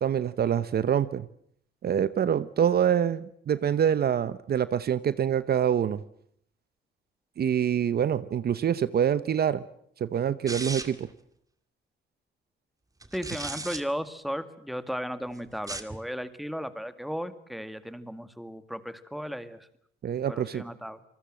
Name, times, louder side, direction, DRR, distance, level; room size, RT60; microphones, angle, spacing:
voice 1, 0.0-1.2 1.8-6.0 7.4-9.6 10.0-11.1 20.0-20.6, right 9 dB, 55° right, 15 dB, 0.9 m, -25 dB
sound 1, 10.5-11.1 13.0-13.8 15.5-16.0, right 2 dB, 15° right, 2.2 m, -36 dB
voice 2, 13.1-19.7 20.3-21.0, equal, ahead, 11 dB, 2.0 m, -35 dB
27.0 x 20.0 x 7.8 m, 0.69 s
cardioid pair, 90°, 20 cm